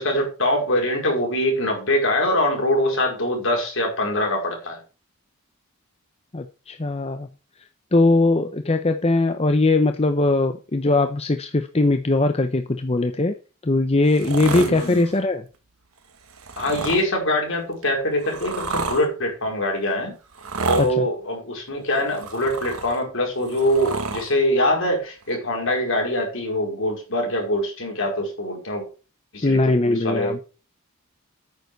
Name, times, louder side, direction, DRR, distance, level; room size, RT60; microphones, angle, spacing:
voice 1, 0.0-4.8 14.5-15.0 16.6-20.2 20.7-28.9 29.3-30.5, left 1 dB, 60° left, 1 dB, 4.8 m, -23 dB
voice 2, 6.3-7.3 7.9-13.3 13.6-15.4 20.8-21.1 29.4-30.4, left 2 dB, 25° left, 7 dB, 0.7 m, -20 dB
sound 1, 14.0-15.1 16.3-17.0 17.8-19.0 20.3-20.9 21.9-23.0 23.4-24.3 25.3-25.4, right 4 dB, 75° right, 1.7 m, -30 dB
9.3 x 6.9 x 6.8 m, 0.34 s
head